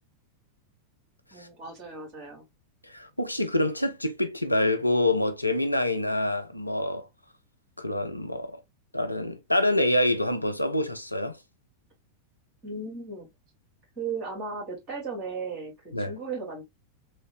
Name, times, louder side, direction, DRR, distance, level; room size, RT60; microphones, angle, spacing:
voice 1, 1.3-2.4 12.6-13.3 14.0-16.6, right 4 dB, 30° right, 1.7 m, -36 dB
voice 2, 2.9-7.1 7.8-8.6 8.9-11.4 15.9-16.1, left 1 dB, 85° left, 0.4 m, -26 dB
3.3 x 2.0 x 2.9 m
figure-of-eight pair, 90°, 0 cm